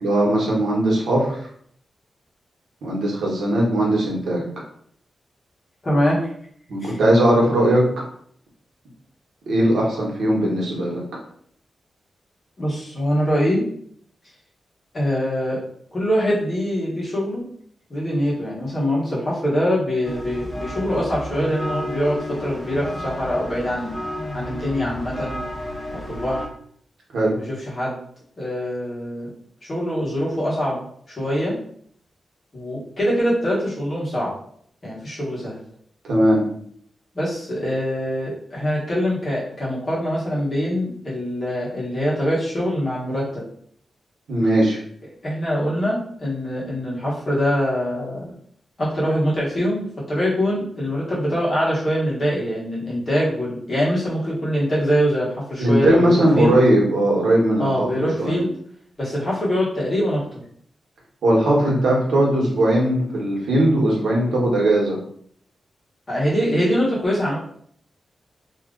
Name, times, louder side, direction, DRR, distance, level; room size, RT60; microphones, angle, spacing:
voice 1, 0.0-1.4 2.8-4.4 6.7-7.8 9.5-11.0 27.1-27.4 36.0-36.4 44.3-44.8 55.6-57.9 58.2-58.4 61.2-65.0, right 1 dB, 85° right, -2 dB, 1.1 m, -19 dB
voice 2, 5.8-6.3 6.8-7.0 12.6-13.6 14.9-15.6 15.9-17.5 17.9-24.0 24.3-25.4 25.9-26.4 27.3-28.0 28.4-29.3 29.6-30.8 31.1-31.6 32.5-34.3 34.8-35.6 37.1-43.4 45.2-48.4 48.8-56.6 57.6-58.5 59.0-60.2 66.1-67.4, equal, 30° left, -6 dB, 1.3 m, -23 dB
sound 1, 20.0-26.5, left 1 dB, 15° left, 0.9 m, -31 dB
2.9 x 2.4 x 3.7 m, 0.62 s
wide cardioid pair, 175°, 0 cm